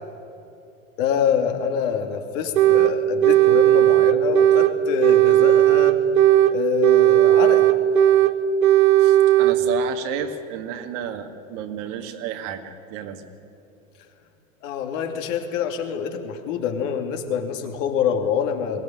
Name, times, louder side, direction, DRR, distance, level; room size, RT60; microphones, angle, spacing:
voice 1, 1.0-6.0 6.5-7.7 14.6-18.8, left 7 dB, 60° left, 4 dB, 2.8 m, -25 dB
sound 1, 2.6-2.9 3.2-4.7 5.0-6.5 6.8-8.3 8.6-9.6, right 13 dB, 85° right, 1.0 m, -15 dB
voice 2, 9.0-13.2, right 10 dB, 60° right, 6 dB, 2.2 m, -31 dB
22.0 x 16.5 x 9.3 m, 2.7 s
hypercardioid pair, 105°, 41 cm